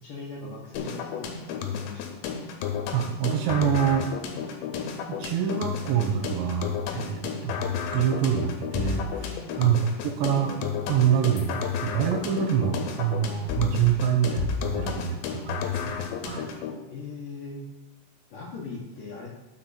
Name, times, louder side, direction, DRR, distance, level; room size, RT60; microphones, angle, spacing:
voice 1, 0.0-2.2 9.7-9.8 16.9-17.6 18.3-19.3, left 3 dB, 65° left, -3 dB, 2.3 m, -40 dB
sound 1, 0.7-16.7, left 7 dB, 85° left, 3.2 m, -32 dB
voice 2, 2.9-4.1 5.1-9.9 10.2-10.5 10.9-16.5, right 9 dB, 80° right, 2 dB, 3.3 m, -26 dB
11.0 x 6.4 x 4.3 m, 1.0 s
omnidirectional pair, 5.3 m